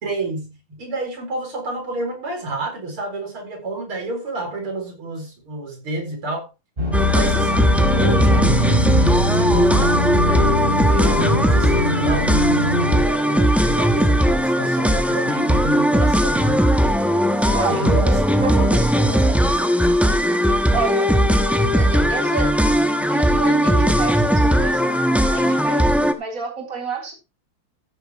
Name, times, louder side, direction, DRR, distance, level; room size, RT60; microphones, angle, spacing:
voice 1, 0.0-6.5 7.1-12.4 13.0-16.6 17.4-18.2 18.5-18.7, right 2 dB, 80° right, 2 dB, 5.4 m, -30 dB
sound 1, 6.8-13.0, left 1 dB, 25° right, 3.4 m, -22 dB
sound 2, 6.9-26.1, equal, ahead, 0.6 m, -18 dB
voice 2, 17.5-19.4 20.7-21.1 21.7-22.5 23.1-24.9 25.3-27.1, right 4 dB, 40° right, 0 dB, 4.1 m, -29 dB
14.5 x 9.7 x 3.1 m, 0.27 s
omnidirectional pair, 2.3 m